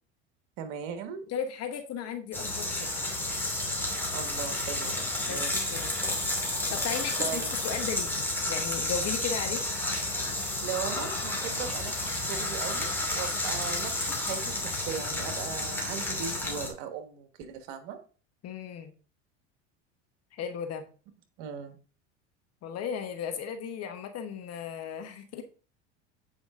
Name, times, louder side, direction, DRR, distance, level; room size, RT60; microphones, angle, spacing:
voice 1, 0.6-1.2 4.1-5.8 7.2-7.5 10.6-18.0 21.4-21.8, right 8 dB, 65° right, 8 dB, 1.5 m, -38 dB
voice 2, 1.3-3.1 5.3-5.9 6.7-9.6 18.4-18.9 20.3-20.9 22.6-25.4, left 7 dB, 45° left, 7 dB, 1.2 m, -36 dB
sound 1, 2.3-16.7, left 1 dB, 5° left, 2.6 m, -31 dB
8.4 x 5.1 x 3.7 m, 0.36 s
supercardioid pair, 100°, 35 cm